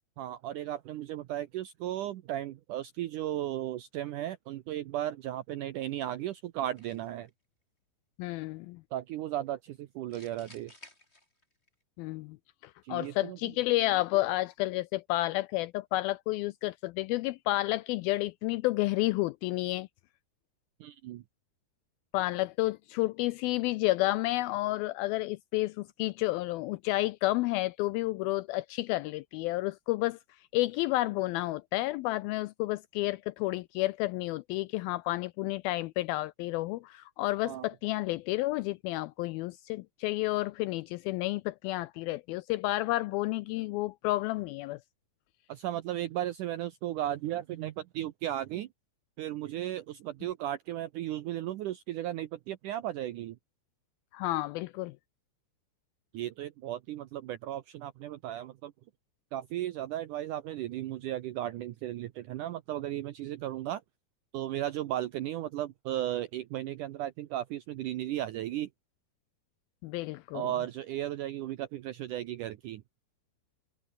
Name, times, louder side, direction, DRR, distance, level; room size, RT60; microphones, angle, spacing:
voice 1, 0.2-7.3 8.9-10.7 12.8-13.4 20.8-21.2 37.4-37.7 45.5-48.7 49.2-53.4 56.1-58.7 59.3-63.8 64.3-68.7 70.3-72.8, right 13 dB, 80° right, 1.8 m, -35 dB
sound 1, 6.8-7.3 10.1-11.7, left 2 dB, 15° left, 5.4 m, -55 dB
voice 2, 8.2-8.8 12.0-12.4 12.6-19.9 22.1-30.2 30.5-44.8 54.1-54.9 69.8-70.4, left 18 dB, 85° left, 2.1 m, -31 dB
omnidirectional pair, 4.7 m